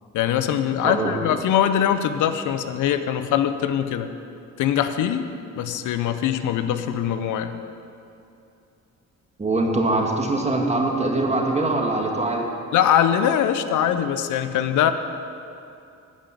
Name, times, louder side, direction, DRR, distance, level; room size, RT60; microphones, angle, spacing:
voice 1, 0.1-4.1 4.6-7.5 12.7-14.9, left 9 dB, 80° left, 10 dB, 0.7 m, -22 dB
voice 2, 0.8-1.1 9.4-12.5, right 2 dB, 20° right, 1 dB, 1.8 m, -23 dB
13.0 x 5.3 x 9.0 m, 2.6 s
cardioid pair, 90°, 30 cm